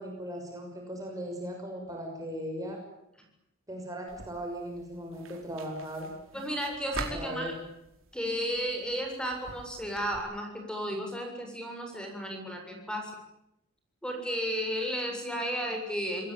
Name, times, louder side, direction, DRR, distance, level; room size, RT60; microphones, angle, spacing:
voice 1, 0.0-2.8 3.7-6.1 7.1-7.6, equal, 15° right, 2 dB, 6.2 m, -38 dB
sound 1, 4.1-10.2, right 3 dB, 65° right, 4.9 m, -45 dB
voice 2, 6.3-7.5 8.1-13.1 14.0-16.3, equal, 5° left, 3 dB, 7.3 m, -33 dB
27.5 x 20.5 x 9.1 m, 0.86 s
head